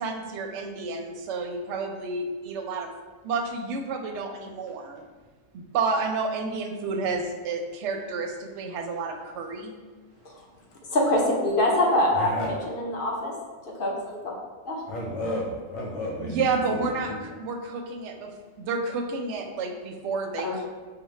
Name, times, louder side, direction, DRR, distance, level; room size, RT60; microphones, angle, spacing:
voice 1, 0.0-2.9 3.2-5.0 5.5-9.7 16.2-18.3 18.6-20.7, right 4 dB, 65° right, 3 dB, 0.8 m, -30 dB
voice 2, 10.9-12.3 12.7-13.3 13.8-14.2 14.6-14.8 20.4-20.7, left 1 dB, 50° left, -3 dB, 0.8 m, -24 dB
voice 3, 12.1-12.5 14.9-17.3, left 1 dB, 80° left, -2 dB, 1.0 m, -33 dB
5.0 x 2.2 x 3.1 m, 1.4 s
omnidirectional pair, 1.4 m